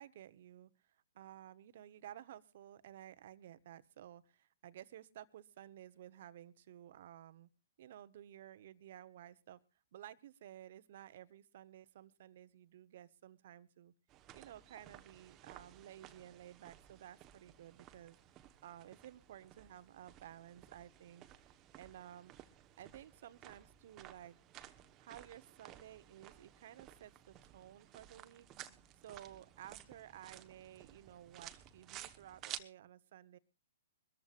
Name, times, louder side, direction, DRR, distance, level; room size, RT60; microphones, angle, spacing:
voice 1, 0.0-7.5 7.8-9.6 9.9-13.9 14.3-18.2 18.6-21.2 21.8-22.3 22.8-24.4 25.0-28.5 29.0-33.4, right 11 dB, 55° right, 14 dB, 1.1 m, -54 dB
sound 1, 14.1-32.6, right 12 dB, 30° right, 1.1 m, -55 dB
23.5 x 14.0 x 2.5 m, 0.29 s
hypercardioid pair, 125°, 0 cm